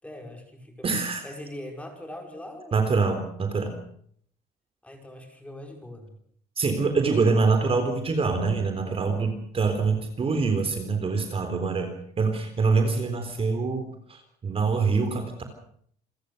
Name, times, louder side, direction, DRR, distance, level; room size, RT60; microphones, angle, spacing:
voice 1, 0.0-1.0 1.2-3.1 4.8-6.1, left 1 dB, 5° left, 3 dB, 5.7 m, -41 dB
voice 2, 0.8-1.2 2.7-3.7 6.6-15.4, right 4 dB, 35° right, 6 dB, 3.8 m, -25 dB
28.0 x 14.5 x 6.7 m, 0.63 s
cardioid pair, 110°, 17 cm